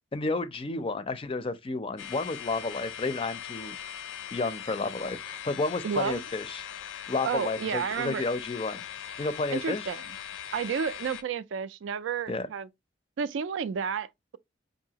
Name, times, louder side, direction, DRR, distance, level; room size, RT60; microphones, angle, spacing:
voice 1, 0.1-3.8 4.3-6.6 7.1-8.8 9.2-9.9 12.3-12.5, left 3 dB, 30° left, 0.4 m, -31 dB
sound 1, 2.0-11.2, left 9 dB, 85° left, 0.5 m, -40 dB
voice 2, 5.8-6.2 7.2-8.3 9.5-10.0 10.5-12.7 13.2-14.4, right 7 dB, 75° right, 0.3 m, -31 dB
4.7 x 2.6 x 2.8 m
head